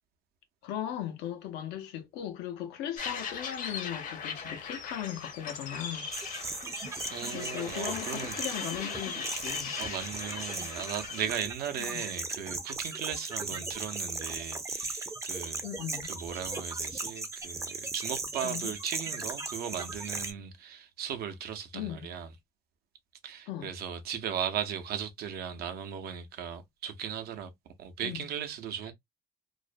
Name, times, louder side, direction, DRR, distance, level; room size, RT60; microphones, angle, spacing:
voice 1, 0.6-6.5 7.3-9.7 11.8-12.0 13.5-13.6 15.6-16.1 18.4-18.7 21.7-22.1 23.5-23.7 28.0-28.3, left 11 dB, 90° left, 0.7 m, -38 dB
sound 1, 3.0-11.3, left 6 dB, 50° left, 0.7 m, -39 dB
sound 2, 6.1-20.3, right 3 dB, 15° right, 0.5 m, -37 dB
voice 2, 7.1-8.4 9.8-15.7 16.0-22.3 23.2-27.5 27.8-28.9, right 8 dB, 65° right, 0.6 m, -37 dB
2.5 x 2.1 x 2.4 m
cardioid pair, 110°, 17 cm